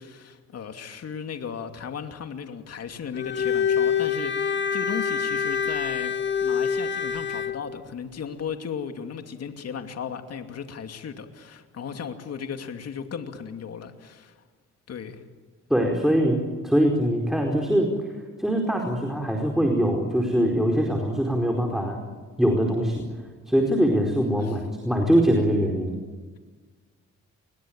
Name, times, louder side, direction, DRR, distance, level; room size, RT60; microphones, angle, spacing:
voice 1, 0.0-6.1 6.4-14.4 14.9-15.2 24.4-24.5, left 7 dB, 55° left, 6 dB, 2.6 m, -36 dB
Bowed string instrument, 3.1-7.6, left 7 dB, 40° left, 1.7 m, -26 dB
voice 2, 15.7-17.9 18.4-22.0 22.4-23.0 23.5-26.0, equal, ahead, 1 dB, 4.7 m, -22 dB
29.5 x 22.5 x 8.9 m, 1.4 s
cardioid pair, 90°, 30 cm